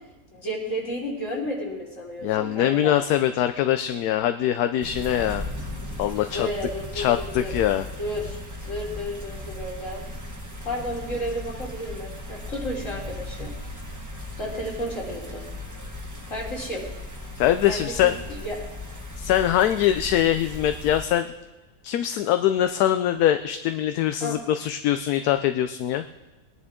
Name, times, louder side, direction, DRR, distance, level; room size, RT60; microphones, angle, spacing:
voice 1, 0.3-3.0 6.2-7.5 8.0-10.0 10.6-13.5 14.4-15.4 16.3-16.9 17.7-18.6 24.2-24.4, equal, 55° left, -4 dB, 3.5 m, -32 dB
voice 2, 2.2-5.4 6.0-6.5 6.9-7.8 17.4-18.2 19.2-21.3 21.8-26.0, left 11 dB, 75° left, 9 dB, 1.1 m, -23 dB
sound 1, 4.8-21.0, left 1 dB, 10° right, 1.3 m, -37 dB
20.5 x 10.5 x 3.7 m, 1.1 s
omnidirectional pair, 1.7 m